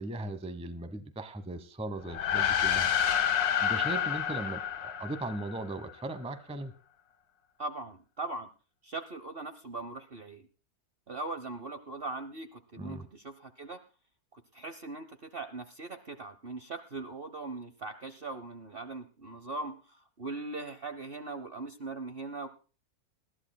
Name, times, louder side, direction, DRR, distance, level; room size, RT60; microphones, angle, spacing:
voice 1, 0.0-2.9 3.6-6.7 12.8-13.0, right 2 dB, 5° right, 12 dB, 0.8 m, -38 dB
sound 1, 2.0-5.7, left 9 dB, 90° left, 1.7 m, -29 dB
voice 2, 7.6-8.5 8.8-10.5 11.1-13.8 14.3-22.5, right 3 dB, 45° right, 11 dB, 0.9 m, -40 dB
20.5 x 14.0 x 2.2 m, 0.37 s
omnidirectional pair, 1.6 m